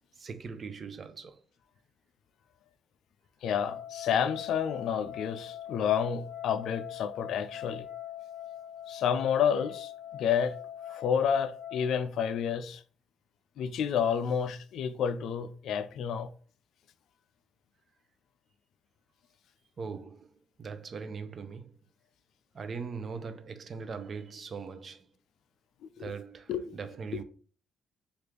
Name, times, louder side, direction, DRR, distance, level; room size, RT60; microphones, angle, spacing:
voice 1, 0.2-1.4 19.8-20.3 20.6-21.8 22.5-25.1 26.0-27.2, right 5 dB, 45° right, 0.5 m, -40 dB
voice 2, 3.4-7.9 8.9-10.5 10.9-12.8 13.6-16.3 26.0-26.1 26.5-26.6 27.1-27.2, left 7 dB, 75° left, 0.3 m, -30 dB
sound 1, 3.7-11.9, left 11 dB, 45° left, 1.5 m, -42 dB
3.3 x 2.5 x 3.0 m
cardioid pair, 90°, 0 cm